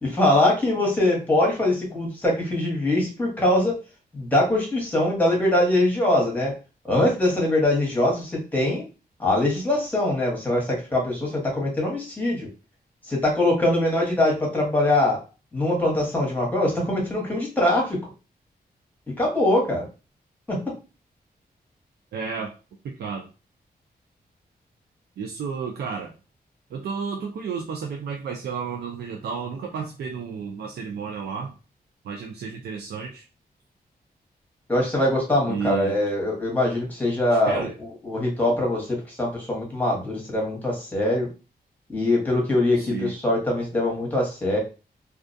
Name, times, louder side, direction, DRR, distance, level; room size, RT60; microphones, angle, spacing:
voice 1, 0.0-3.7 4.1-6.5 6.8-8.8 9.2-12.5 13.0-15.2 15.5-18.0 19.2-19.9 20.5-20.6 34.7-41.3 41.9-44.6, left 1 dB, 10° left, -2 dB, 1.0 m, -22 dB
voice 2, 22.1-22.5 22.8-23.3 25.2-26.1 26.7-31.5 32.0-33.3 35.5-36.0 37.3-37.7 42.8-43.1, right 5 dB, 85° right, 2 dB, 0.4 m, -32 dB
2.3 x 2.2 x 2.5 m, 0.32 s
wide cardioid pair, 140°, 16 cm